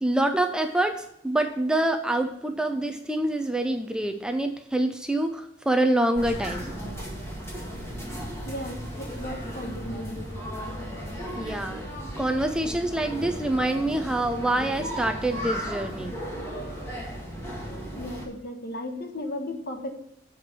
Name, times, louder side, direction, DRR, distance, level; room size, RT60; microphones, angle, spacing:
voice 1, 0.0-6.7 11.4-11.8 12.2-16.2, right 1 dB, 5° right, 6 dB, 0.5 m, -26 dB
sound 1, 6.2-18.3, equal, 15° left, 1.9 m, -35 dB
voice 2, 8.4-10.3 18.0-19.9, left 1 dB, 55° left, 5 dB, 1.3 m, -35 dB
7.6 x 5.0 x 7.3 m, 0.77 s
head